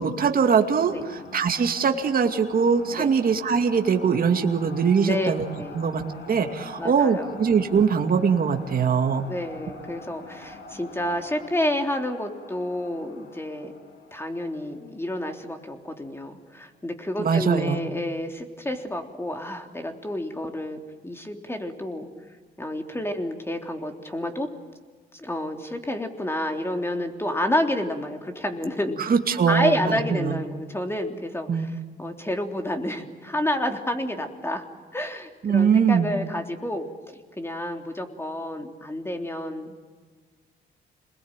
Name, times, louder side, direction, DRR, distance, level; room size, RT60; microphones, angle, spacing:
voice 1, 0.0-5.5 5.7-9.2 17.2-17.9 29.0-30.5 31.5-31.7 35.4-36.1, right 6 dB, 45° right, 5 dB, 2.4 m, -22 dB
sound 1, 0.6-16.4, left 2 dB, 60° left, 6.7 m, -45 dB
voice 2, 5.0-5.8 6.8-7.3 9.3-13.7 14.1-22.1 22.6-24.5 25.1-29.0 29.5-31.7 32.0-34.6 34.9-36.9 37.4-39.9, left 1 dB, 10° left, 4 dB, 3.5 m, -29 dB
27.5 x 21.0 x 9.1 m, 1.5 s
cardioid pair, 90°, 20 cm